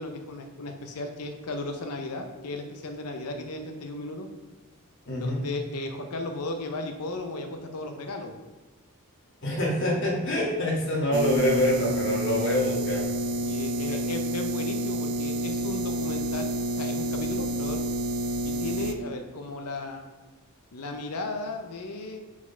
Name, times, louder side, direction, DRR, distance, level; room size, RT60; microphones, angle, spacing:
voice 1, 0.0-4.3 5.1-8.3 13.4-17.8 18.4-20.1 20.7-22.2, left 2 dB, 90° left, 5 dB, 0.7 m, -35 dB
voice 2, 5.1-5.4 9.4-13.0 13.9-14.0, left 1 dB, 55° left, -4 dB, 1.8 m, -25 dB
sound 1, 11.1-18.9, right 1 dB, 55° right, 0.5 m, -29 dB
4.8 x 4.2 x 5.4 m, 1.2 s
head